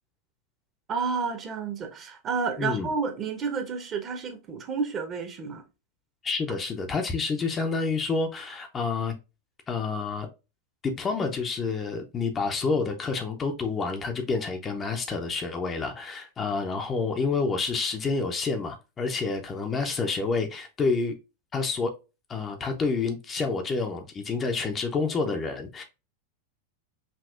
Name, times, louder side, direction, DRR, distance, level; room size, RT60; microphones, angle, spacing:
voice 1, 0.9-5.6, right 5 dB, 30° right, 1.0 m, -30 dB
voice 2, 2.6-2.9 6.2-9.1 9.7-10.3 10.8-21.1 21.5-21.9 22.3-25.8, left 4 dB, 20° left, 0.7 m, -28 dB
5.2 x 2.8 x 2.4 m
figure-of-eight pair, 90°, 0 cm